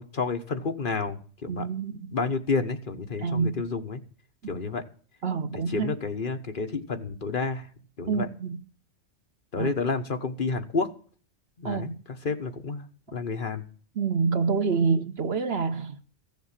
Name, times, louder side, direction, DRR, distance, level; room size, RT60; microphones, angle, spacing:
voice 1, 0.0-1.7 1.9-4.0 4.5-4.8 5.5-7.7 8.0-8.3 9.5-10.9 11.6-13.6, left 4 dB, 50° left, 1.2 m, -30 dB
voice 2, 1.5-2.0 3.2-3.5 5.2-5.9 8.1-8.6 9.6-9.7 11.6-12.0 14.0-16.0, right 5 dB, 60° right, 1.2 m, -27 dB
15.0 x 7.3 x 7.4 m
omnidirectional pair, 1.2 m